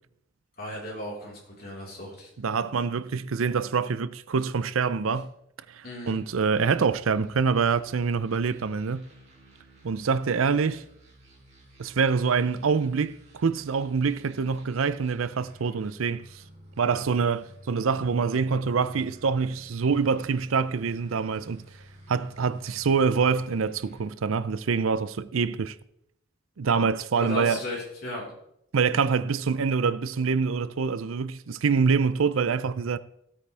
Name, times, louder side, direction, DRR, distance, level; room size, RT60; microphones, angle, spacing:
voice 1, 0.6-2.3 5.8-6.2 27.1-28.2, left 1 dB, 50° left, 4.3 m, -36 dB
voice 2, 2.4-5.3 5.7-9.1 9.8-10.8 11.8-16.3 16.8-21.6 22.1-25.8 26.6-27.6 28.7-33.0, right 5 dB, 85° right, 0.5 m, -25 dB
sound 1, 6.7-24.0, right 1 dB, 35° right, 3.5 m, -53 dB
16.0 x 8.7 x 3.4 m
head